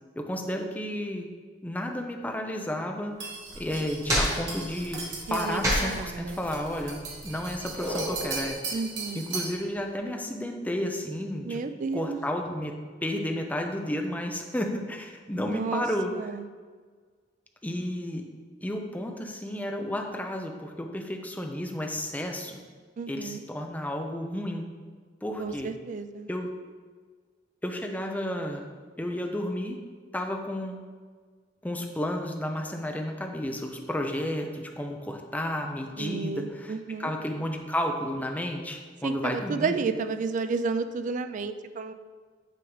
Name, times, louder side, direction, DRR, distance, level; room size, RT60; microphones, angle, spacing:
voice 1, 0.2-1.2 1.6-3.3 3.6-5.0 5.3-8.8 9.1-11.6 11.9-12.7 13.0-16.1 17.6-18.2 18.6-22.6 23.1-24.6 25.2-25.7 26.3-26.5 27.6-28.6 29.0-29.8 30.1-30.8 31.6-36.7 37.0-39.8, left 1 dB, 10° left, 3 dB, 0.5 m, -32 dB
sound 1, 3.2-9.6, right 4 dB, 70° right, 1.3 m, -38 dB
sound 2, 3.5-8.5, equal, 20° right, 1.3 m, -31 dB
voice 2, 5.3-6.4 8.7-9.2 11.4-12.2 15.4-15.9 16.1-16.5 23.0-23.4 25.4-26.3 36.0-37.1 39.0-41.9, right 4 dB, 45° right, 10 dB, 0.3 m, -32 dB
9.1 x 3.6 x 3.1 m, 1.5 s
head